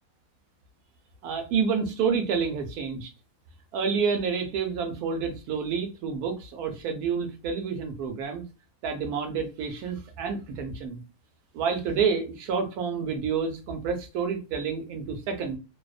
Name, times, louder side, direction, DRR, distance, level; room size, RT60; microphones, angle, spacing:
voice 1, 1.2-3.1 3.7-8.4 8.8-11.0 11.5-15.6, right 6 dB, 85° right, 1.1 m, -29 dB
2.7 x 2.0 x 2.3 m
omnidirectional pair, 1.6 m